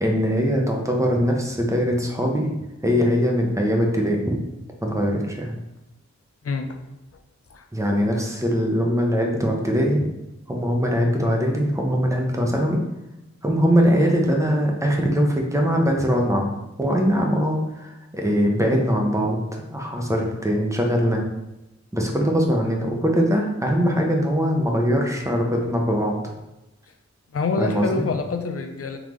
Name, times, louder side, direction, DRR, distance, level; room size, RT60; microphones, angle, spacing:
voice 1, 0.0-2.5 2.8-4.4 4.8-5.6 7.7-10.1 10.5-12.8 13.4-16.5 16.8-21.2 21.9-26.2 27.6-28.1, equal, 10° right, 0 dB, 0.8 m, -21 dB
voice 2, 6.4-6.8 7.5-7.7 27.3-29.0, left 4 dB, 50° left, 6 dB, 0.5 m, -26 dB
3.6 x 3.6 x 3.1 m, 0.97 s
wide cardioid pair, 60°, 29 cm